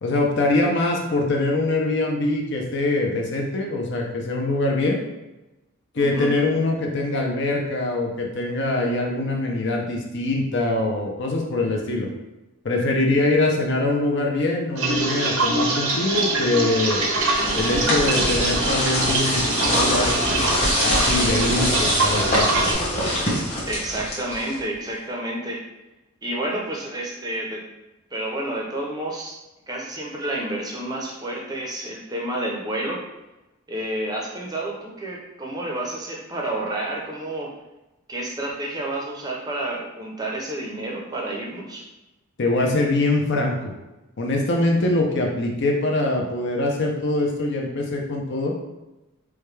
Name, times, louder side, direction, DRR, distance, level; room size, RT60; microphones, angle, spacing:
voice 1, 0.0-5.0 5.9-12.1 12.6-17.0 17.5-20.2 20.8-22.5 42.4-43.7 44.2-48.5, left 2 dB, 50° left, 0 dB, 0.5 m, -23 dB
voice 2, 6.0-6.3 17.4-17.8 23.6-25.6 26.2-27.6 28.1-29.4 29.7-33.0 33.7-37.5 38.1-41.9, right 1 dB, 15° right, -2 dB, 0.6 m, -30 dB
sound 1, 14.8-22.7, right 2 dB, 70° right, 0.7 m, -24 dB
sound 2, 16.9-24.7, left 1 dB, 30° left, 1.1 m, -24 dB
4.8 x 2.2 x 3.2 m, 1.0 s
head